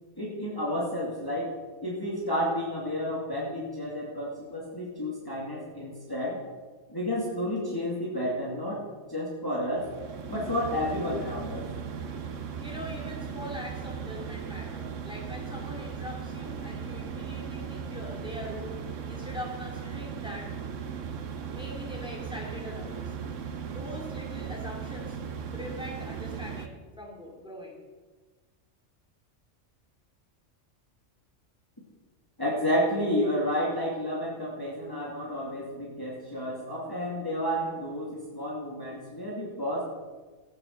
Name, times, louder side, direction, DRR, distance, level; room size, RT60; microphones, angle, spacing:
voice 1, 0.2-1.5 1.8-6.4 6.9-8.8 9.1-9.9 10.3-11.7 32.4-39.8, equal, 15° left, -4 dB, 2.3 m, -31 dB
sound 1, 9.7-26.7, right 6 dB, 80° right, 1.3 m, -37 dB
voice 2, 12.6-20.5 21.5-23.2 23.4-25.2 25.5-27.8, left 1 dB, 5° right, -2 dB, 2.8 m, -42 dB
14.5 x 9.0 x 6.5 m, 1.4 s
omnidirectional pair, 1.3 m